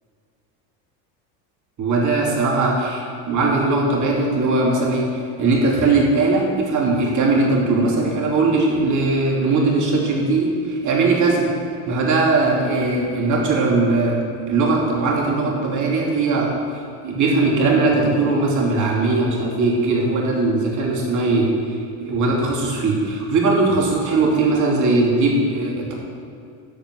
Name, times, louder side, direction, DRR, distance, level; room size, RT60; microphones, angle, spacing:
voice 1, 1.8-11.5 11.9-14.2 14.5-25.9, right 3 dB, 45° right, -2 dB, 2.8 m, -19 dB
13.0 x 5.4 x 7.9 m, 2.5 s
cardioid pair, 130°, 42 cm